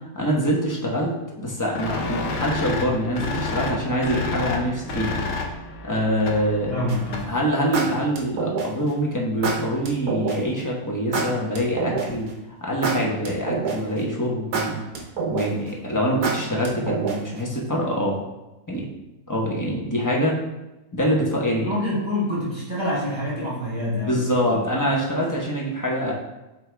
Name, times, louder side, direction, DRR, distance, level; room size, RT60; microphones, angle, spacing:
voice 1, 0.1-5.2 5.8-6.8 7.3-12.3 12.6-14.8 15.3-18.2 18.7-18.8 19.3-20.4 20.9-21.7 24.0-26.1, equal, 15° left, -3 dB, 0.9 m, -24 dB
sound 1, 1.7-7.5, left 3 dB, 85° left, 1.5 m, -30 dB
voice 2, 6.7-7.3 21.5-24.8, left 1 dB, 15° right, -7 dB, 1.6 m, -27 dB
sound 2, 6.9-7.2 7.7-8.9 9.4-10.4 11.1-12.3 12.8-14.0 14.5-15.7 16.2-17.4, right 4 dB, 75° right, 1.5 m, -26 dB
7.7 x 3.9 x 3.4 m, 0.98 s
omnidirectional pair, 1.7 m